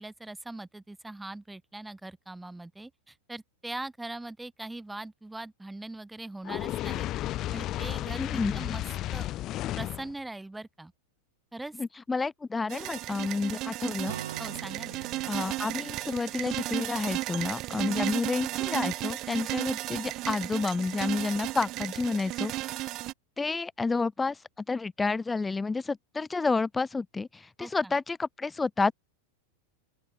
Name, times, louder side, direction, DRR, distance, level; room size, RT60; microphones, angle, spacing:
voice 1, 0.0-7.1 7.5-8.8 9.1-9.3 9.7-10.9 11.5-11.8 14.4-15.0 17.8-18.1 27.6-28.0, right 2 dB, 5° right, 2.7 m, -41 dB
Fire, 6.4-10.1, left 14 dB, 35° left, 1.3 m, -33 dB
voice 2, 8.2-8.6 11.8-14.2 15.3-22.7 23.4-28.9, left 4 dB, 10° left, 0.6 m, -30 dB
sound 1, 12.7-23.1, right 17 dB, 35° right, 0.4 m, -34 dB
Acoustic guitar, 14.0-17.8, right 9 dB, 65° right, 4.3 m, -44 dB
open air
figure-of-eight pair, 90°, 0 cm